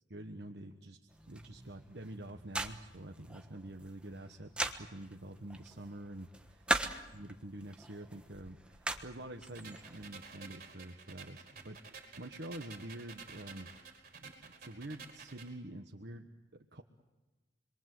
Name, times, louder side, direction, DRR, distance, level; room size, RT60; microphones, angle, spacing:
voice 1, 0.1-1.0 1.3-4.5 4.8-6.8 7.1-13.7 14.2-16.3 16.7-16.8, right 1 dB, 65° right, 3 dB, 1.3 m, -47 dB
sound 1, 1.1-10.1, right 1 dB, 5° right, 1.3 m, -41 dB
sound 2, 9.5-15.5, right 5 dB, 50° right, 4.8 m, -52 dB
29.0 x 22.5 x 7.8 m, 1.2 s
head